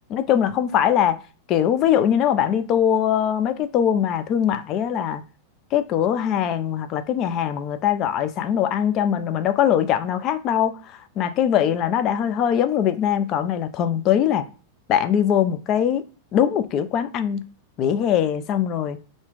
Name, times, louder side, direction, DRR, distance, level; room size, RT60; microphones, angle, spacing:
voice 1, 0.1-1.2 1.5-5.2 5.7-10.8 11.2-14.5 14.9-16.0 16.3-17.4 17.8-19.0, left 9 dB, 35° left, 0.4 m, -21 dB
2.5 x 2.3 x 3.5 m
figure-of-eight pair, 90°, 0 cm